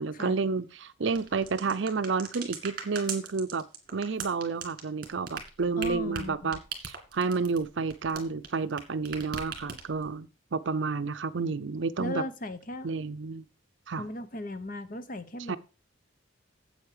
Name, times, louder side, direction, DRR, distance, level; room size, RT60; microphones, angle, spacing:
voice 1, 0.0-3.6 3.9-6.6 7.1-12.2 12.8-13.4 13.9-14.0 15.5-15.6, right 4 dB, 65° right, 0.6 m, -30 dB
sound 1, 1.1-8.8 9.1-10.1, right 6 dB, 45° right, 2.4 m, -39 dB
voice 2, 5.8-6.5 12.0-12.9 14.0-15.6, left 1 dB, 40° left, 0.9 m, -36 dB
8.3 x 8.0 x 4.9 m
head